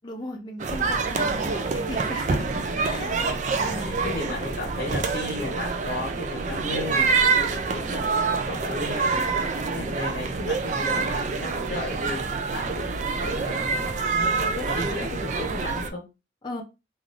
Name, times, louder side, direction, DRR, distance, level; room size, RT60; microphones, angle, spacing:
voice 1, 0.0-2.4 2.8-3.1 3.6-3.9 9.7-10.0 16.4-16.6, left 1 dB, 25° left, 0.5 m, -36 dB
sound 1, 0.6-15.9, right 4 dB, 45° right, 0.4 m, -26 dB
voice 2, 2.3-9.2 9.6-12.2 12.5-13.7 14.0-16.0, left 2 dB, 60° left, 0.8 m, -35 dB
3.2 x 2.4 x 2.5 m
head